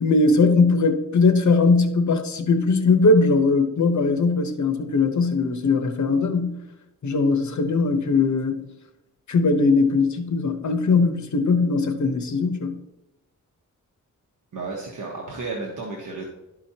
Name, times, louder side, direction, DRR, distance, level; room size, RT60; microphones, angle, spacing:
voice 1, 0.0-6.6 7.0-8.6 9.3-12.8, left 3 dB, 65° left, 0.9 m, -20 dB
voice 2, 14.5-16.2, right 3 dB, 70° right, 1.3 m, -32 dB
12.5 x 4.9 x 2.8 m
wide cardioid pair, 95°, 32 cm